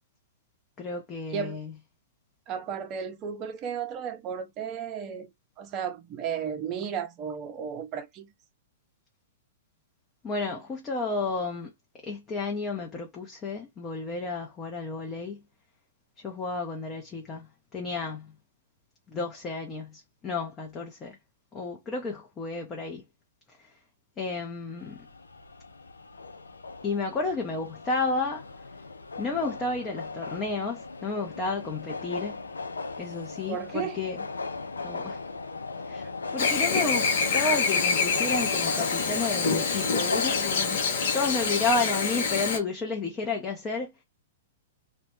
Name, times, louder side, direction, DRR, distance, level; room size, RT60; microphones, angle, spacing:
voice 1, 0.8-1.7 10.2-11.7 12.0-15.4 16.2-17.5 17.7-18.3 19.1-21.2 21.5-23.0 24.2-25.0 26.8-28.4 29.2-32.4 33.0-34.2 34.8-35.2 35.9-40.8 41.1-43.9, left 3 dB, 25° left, 0.6 m, -31 dB
voice 2, 1.3-1.6 2.5-5.3 5.6-8.3 33.5-34.0, right 7 dB, 35° right, 0.5 m, -34 dB
sound 1, 24.8-41.3, left 3 dB, 85° left, 0.3 m, -37 dB
Chirp tweet / Buzz, 36.4-42.6, left 5 dB, 60° left, 0.7 m, -26 dB
2.1 x 2.0 x 2.9 m
hypercardioid pair, 110°, 0 cm